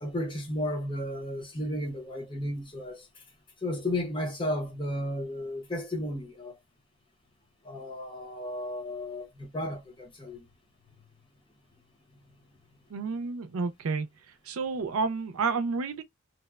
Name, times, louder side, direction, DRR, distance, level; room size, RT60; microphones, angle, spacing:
voice 1, 0.0-3.2 3.6-6.6 7.6-10.4, left 1 dB, 25° left, 0.6 m, -33 dB
voice 2, 12.9-14.1 14.5-16.0, right 4 dB, 90° right, 0.4 m, -30 dB
2.8 x 2.0 x 2.2 m
head